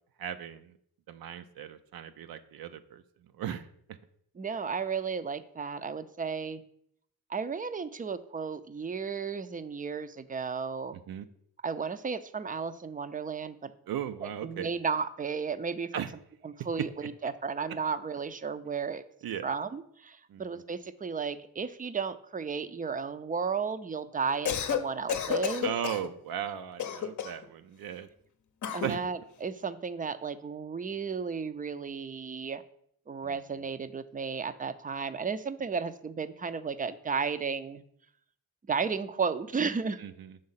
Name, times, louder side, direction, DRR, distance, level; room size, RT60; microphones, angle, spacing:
voice 1, 0.2-0.8 1.1-4.0 10.9-11.3 13.9-14.7 15.9-16.1 16.8-17.1 19.2-19.5 20.3-20.6 25.6-28.1 28.8-29.1 33.2-33.4 40.0-40.4, right 9 dB, 75° right, 9 dB, 0.5 m, -37 dB
voice 2, 4.4-6.6 7.3-11.0 11.6-13.7 14.2-16.1 16.4-16.9 17.2-19.0 19.4-25.7 28.7-32.6 33.1-37.8 38.7-40.0, right 5 dB, 25° right, 12 dB, 0.4 m, -34 dB
Cough, 24.3-24.8 25.1-26.1 26.8-27.4 28.6-29.0, left 9 dB, 55° left, 0.7 m, -31 dB
6.5 x 3.5 x 5.6 m, 0.68 s
cardioid pair, 75°, 36 cm